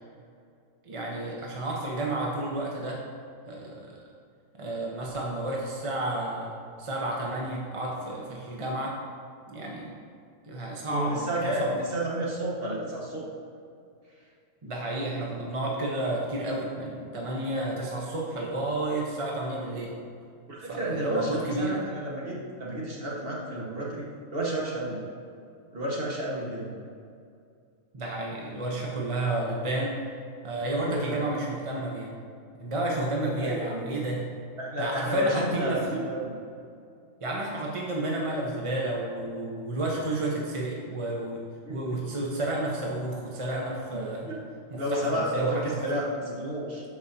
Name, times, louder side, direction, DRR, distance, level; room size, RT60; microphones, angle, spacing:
voice 1, 0.8-3.0 3.4-3.9 4.6-9.0 9.5-9.9 10.4-11.7 14.6-19.9 20.7-21.8 27.9-30.0 30.4-32.1 32.6-34.2 34.8-35.8 37.2-41.4 41.7-44.3 44.7-45.7, right 1 dB, 30° right, -2 dB, 0.7 m, -31 dB
voice 2, 10.9-13.2 20.5-24.1 24.3-25.0 25.7-26.7 30.9-31.2 33.4-34.0 34.6-36.3 41.7-41.8 43.9-44.4 44.7-46.8, right 1 dB, 45° right, -5 dB, 1.6 m, -31 dB
12.5 x 4.9 x 2.7 m, 2.4 s
omnidirectional pair, 1.4 m